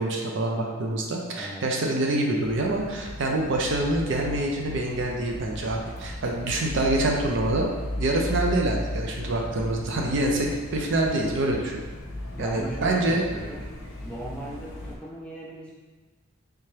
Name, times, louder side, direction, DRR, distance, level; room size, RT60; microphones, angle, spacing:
voice 1, 0.0-7.7 8.0-11.8 12.4-13.3, right 2 dB, 55° right, 0 dB, 0.5 m, -26 dB
voice 2, 1.3-1.7 12.4-13.7 14.0-15.7, equal, 5° left, -5 dB, 0.4 m, -38 dB
sound 1, 2.4-15.0, left 1 dB, 75° left, 0.6 m, -36 dB
3.4 x 2.8 x 3.3 m, 1.4 s
head